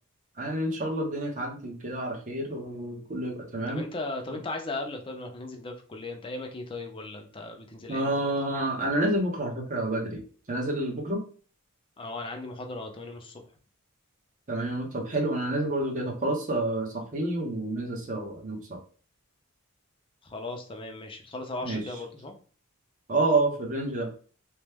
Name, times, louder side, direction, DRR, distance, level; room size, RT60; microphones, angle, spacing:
voice 1, 0.4-3.8 7.9-10.2 10.5-11.2 14.5-18.8 21.6-21.8 23.1-24.1, right 2 dB, 35° right, 1 dB, 0.8 m, -29 dB
voice 2, 3.7-8.3 12.0-13.4 20.2-22.3, left 2 dB, 25° left, 3 dB, 0.5 m, -37 dB
3.0 x 2.1 x 3.4 m, 0.40 s
head